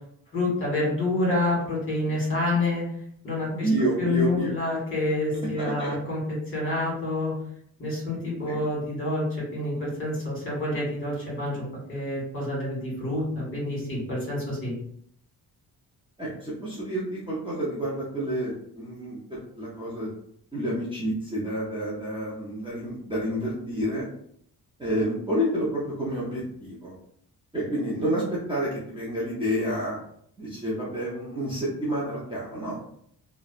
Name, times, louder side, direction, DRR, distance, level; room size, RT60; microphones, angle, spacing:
voice 1, 0.3-2.8 3.2-3.7 4.0-7.3 7.8-11.6 11.9-14.7, left 2 dB, 30° left, -5 dB, 1.4 m, -28 dB
voice 2, 3.5-4.5 5.6-5.9 8.5-8.6 16.2-20.1 20.5-24.1 24.8-26.9 27.5-30.0 30.4-32.8, equal, 15° right, -8 dB, 0.5 m, -29 dB
2.6 x 2.1 x 2.4 m, 0.68 s
wide cardioid pair, 160°, 38 cm